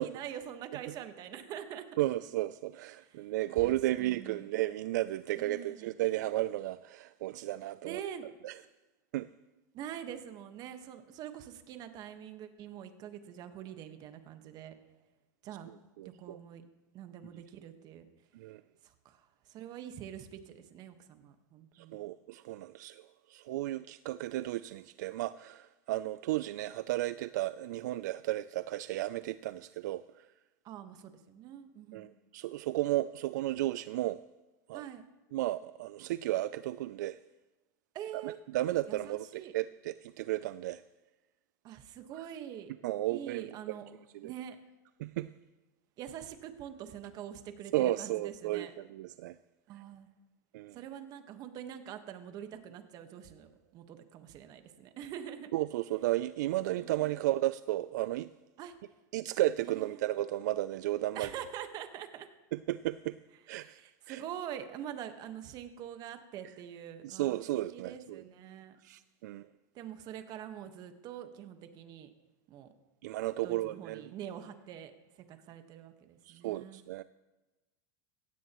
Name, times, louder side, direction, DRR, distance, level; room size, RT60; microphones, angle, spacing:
voice 1, 0.0-1.9 2.9-3.3 3.5-4.4 5.3-5.9 7.8-8.3 9.7-14.7 15.4-15.7 16.0-16.6 16.9-18.1 18.8-22.0 30.6-32.1 34.7-35.0 37.9-38.4 38.9-39.5 41.6-42.7 43.1-43.9 44.2-44.6 46.0-48.7 49.7-50.1 50.7-55.5 56.8-57.3 58.6-58.7 59.6-60.0 61.1-62.3 63.5-67.4 67.7-68.8 69.7-72.1 72.5-72.7 73.4-76.8, right 10 dB, 40° right, 1.4 m, -45 dB
voice 2, 2.0-8.0 8.4-8.6 9.1-9.3 16.0-16.4 18.3-18.6 21.7-30.3 31.9-34.2 34.7-34.8 35.3-37.2 38.1-40.8 42.8-43.6 44.1-44.3 45.0-45.3 47.7-49.4 50.5-50.8 55.5-58.3 59.1-61.3 62.5-63.2 63.5-63.8 64.1-64.2 67.0-68.2 68.8-69.5 73.0-74.0 76.3-77.0, right 16 dB, 75° right, 0.4 m, -33 dB
17.0 x 15.5 x 3.0 m
supercardioid pair, 125°, 10 cm